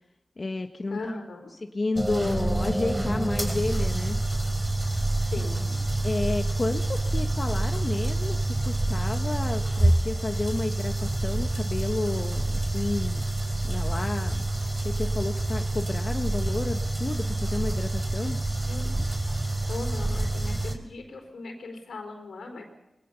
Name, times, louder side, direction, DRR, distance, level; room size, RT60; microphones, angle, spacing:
voice 1, 0.4-1.2 1.5-4.2 6.0-13.2 13.6-14.5 14.8-18.4, left 2 dB, 45° left, 5 dB, 1.3 m, -31 dB
voice 2, 0.9-1.5 5.3-5.8 18.6-18.9 19.7-22.6, left 3 dB, 85° left, 5 dB, 4.4 m, -38 dB
sound 1, 2.0-20.8, right 2 dB, 20° right, 4.0 m, -27 dB
22.0 x 19.0 x 7.0 m, 0.96 s
cardioid pair, 45°, 0 cm